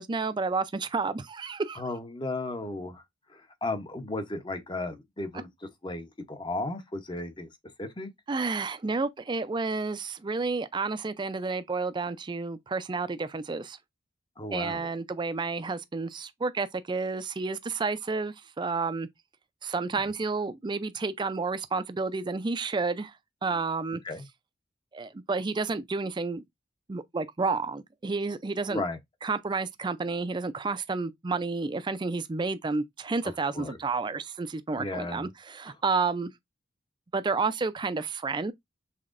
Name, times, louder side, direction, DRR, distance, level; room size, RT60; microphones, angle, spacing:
voice 1, 0.0-1.8 8.3-13.8 14.5-19.1 19.6-23.1 23.4-24.0 24.9-26.4 26.9-28.8 29.2-36.3 37.1-38.5, right 4 dB, 25° right, 0.4 m, -30 dB
voice 2, 1.7-3.0 3.3-5.5 5.8-7.5 7.8-8.1 14.4-14.9 24.0-24.2 28.7-29.0 33.2-33.8 34.8-35.3, left 2 dB, 25° left, 0.8 m, -35 dB
5.8 x 3.5 x 2.5 m
head